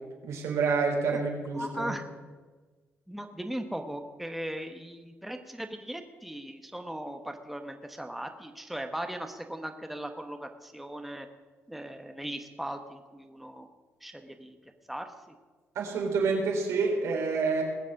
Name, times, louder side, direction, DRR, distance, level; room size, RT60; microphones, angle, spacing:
voice 1, 0.2-1.9 15.7-17.6, right 4 dB, 85° right, 1 dB, 3.3 m, -28 dB
voice 2, 1.6-2.1 3.1-11.3 11.7-13.7 14.0-14.6 14.9-15.1, right 1 dB, 5° right, 5 dB, 1.1 m, -38 dB
20.0 x 7.2 x 6.4 m, 1.4 s
cardioid pair, 105°, 5 cm